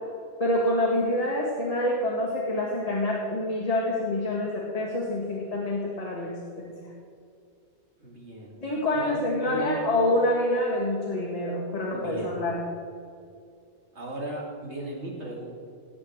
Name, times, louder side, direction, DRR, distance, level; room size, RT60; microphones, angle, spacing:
voice 1, 0.4-6.3 6.6-6.7 8.6-12.6, left 1 dB, 35° left, -4 dB, 2.1 m, -26 dB
voice 2, 8.0-8.6 8.9-9.1 9.4-9.9 11.9-12.5 13.9-15.5, right 1 dB, 80° right, -2 dB, 2.9 m, -36 dB
19.0 x 8.4 x 4.8 m, 2.4 s
omnidirectional pair, 1.2 m